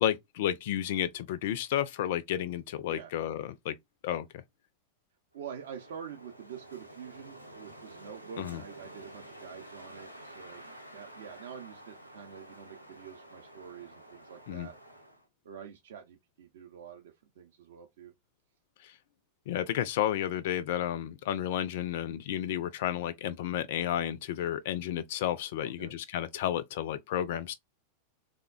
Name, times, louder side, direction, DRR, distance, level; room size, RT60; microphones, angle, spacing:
voice 1, 0.0-3.8 4.0-4.3 8.4-8.6 14.5-14.7 18.8-18.9 19.5-27.5, left 11 dB, 55° left, 0.3 m, -32 dB
voice 2, 5.3-10.6 10.9-14.8 15.4-18.1 25.6-25.9, right 8 dB, 60° right, 0.5 m, -46 dB
Wind, 5.4-15.3, right 1 dB, 90° left, 0.7 m, -50 dB
3.4 x 2.1 x 2.3 m
figure-of-eight pair, 90°, 0 cm